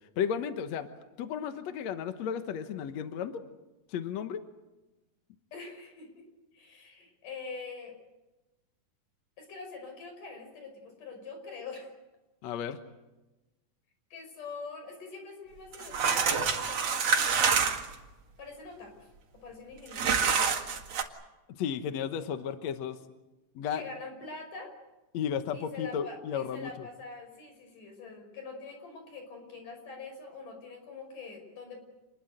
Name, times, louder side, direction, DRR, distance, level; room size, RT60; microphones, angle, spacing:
voice 1, 0.2-0.9 1.2-3.4 3.9-4.4 12.4-12.8 21.5-23.0 23.6-23.8 25.1-26.9, left 8 dB, 65° left, 8 dB, 2.3 m, -33 dB
voice 2, 5.5-6.2 6.5-8.0 9.4-11.9 14.1-17.7 18.4-19.1 19.4-20.7 23.7-24.7 25.5-31.8, left 4 dB, 90° left, 5 dB, 7.2 m, -44 dB
sound 1, 15.7-17.9 19.9-21.0, right 6 dB, 55° right, 3.0 m, -26 dB
28.0 x 21.0 x 7.9 m, 1.1 s
omnidirectional pair, 3.6 m